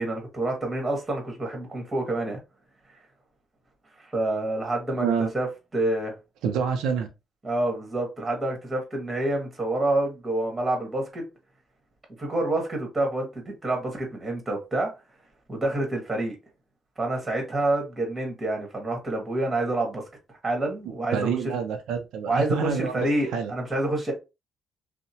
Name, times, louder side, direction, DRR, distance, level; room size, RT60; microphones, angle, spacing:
voice 1, 0.0-2.4 4.1-5.5 5.7-6.1 7.4-11.2 12.2-14.9 15.5-16.4 17.0-20.0 20.4-21.6 22.3-24.1, right 2 dB, 25° right, 1.2 m, -27 dB
voice 2, 5.0-5.3 6.4-7.1 21.1-23.5, right 6 dB, 90° right, 0.5 m, -27 dB
2.8 x 2.0 x 2.7 m
cardioid pair, 90°, 0 cm